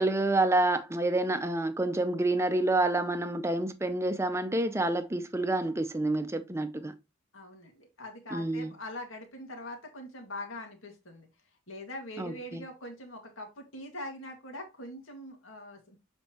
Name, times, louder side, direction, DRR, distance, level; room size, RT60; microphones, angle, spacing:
voice 1, 0.0-6.9 8.3-8.7 12.2-12.6, right 2 dB, 15° right, 0.6 m, -28 dB
voice 2, 7.3-11.3 11.7-16.0, left 1 dB, 85° left, 2.0 m, -43 dB
7.4 x 4.4 x 3.0 m
head